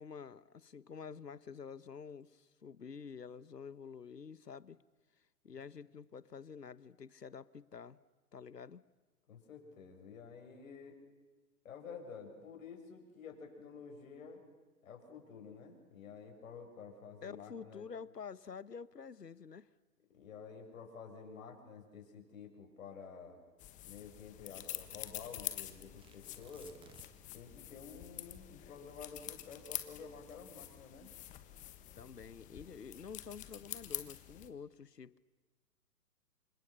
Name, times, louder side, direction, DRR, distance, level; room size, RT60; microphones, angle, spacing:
voice 1, 0.0-4.8 5.4-8.0 8.3-8.8 17.2-19.7 31.9-35.2, left 6 dB, 90° left, 19 dB, 1.2 m, -49 dB
voice 2, 9.3-11.0 11.6-14.4 14.8-17.9 20.1-23.4 23.8-26.7 27.3-31.1, left 5 dB, 55° left, 3 dB, 7.3 m, -51 dB
sound 1, 23.6-34.5, left 14 dB, 15° left, 1.3 m, -47 dB
Tearing, 26.0-27.4 27.7-27.8 28.3-30.7 31.4-31.8, right 6 dB, 10° right, 1.4 m, -61 dB
28.5 x 25.5 x 6.7 m, 1.3 s
figure-of-eight pair, 130°, 47 cm